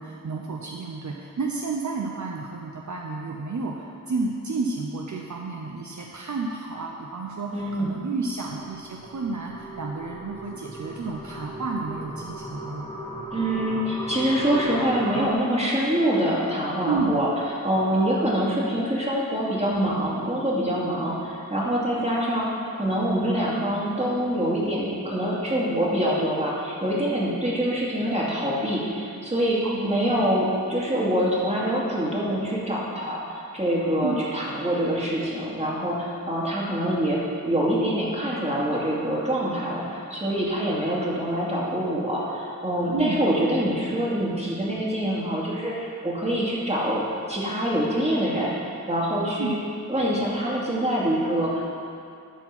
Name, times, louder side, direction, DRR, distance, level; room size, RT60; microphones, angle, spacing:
voice 1, 0.0-12.9 16.8-17.2 29.6-30.3 34.0-34.2 42.9-43.2 49.4-49.6, right 4 dB, 60° right, -1 dB, 0.8 m, -31 dB
voice 2, 7.5-8.0 13.3-22.5 22.7-48.5 48.9-49.5 49.9-51.7, equal, 20° right, -5 dB, 2.4 m, -25 dB
sound 1, 8.4-15.3, equal, 15° left, 1.3 m, -37 dB
12.5 x 4.5 x 6.1 m, 2.6 s
wide cardioid pair, 75°, 34 cm